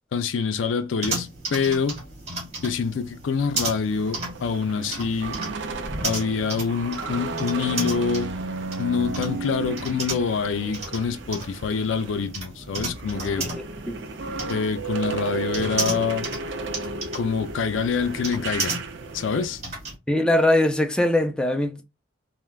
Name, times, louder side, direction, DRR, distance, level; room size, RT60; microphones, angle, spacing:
voice 1, 0.1-2.0 2.6-5.4 6.0-8.3 8.8-13.5 14.5-16.3 17.1-18.8 19.1-19.6, left 5 dB, 90° left, 0.4 m, -26 dB
sound 1, 1.0-19.9, right 2 dB, 35° right, 1.3 m, -34 dB
sound 2, 3.9-12.3 12.6-19.4, right 3 dB, 65° right, 0.4 m, -34 dB
voice 2, 20.1-21.8, left 1 dB, 5° left, 0.3 m, -21 dB
3.2 x 2.1 x 2.2 m
head